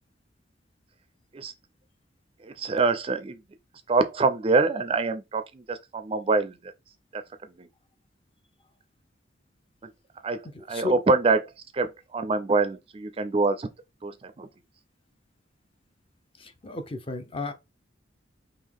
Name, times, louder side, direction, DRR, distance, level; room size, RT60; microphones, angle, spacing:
voice 1, 2.4-3.4 3.9-6.5 7.1-7.2 10.2-10.4 10.7-11.5 11.7-13.7 14.0-14.1 14.4-14.5, right 3 dB, 30° right, 0.4 m, -25 dB
voice 2, 10.5-10.9 16.4-17.5, left 3 dB, 30° left, 0.5 m, -33 dB
3.7 x 2.8 x 3.5 m
head